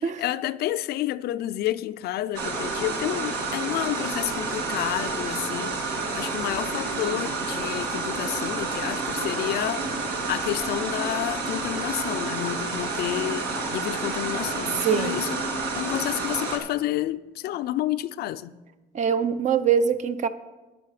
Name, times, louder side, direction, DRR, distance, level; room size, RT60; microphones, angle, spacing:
voice 1, 0.2-5.8 6.1-18.6, left 14 dB, 70° left, 0.4 m, -30 dB
sound 1, 2.3-16.6, right 3 dB, 80° right, 1.8 m, -29 dB
voice 2, 14.7-15.1 18.9-20.3, right 7 dB, 45° right, 0.6 m, -23 dB
10.5 x 9.0 x 4.9 m
cardioid pair, 110°, 17 cm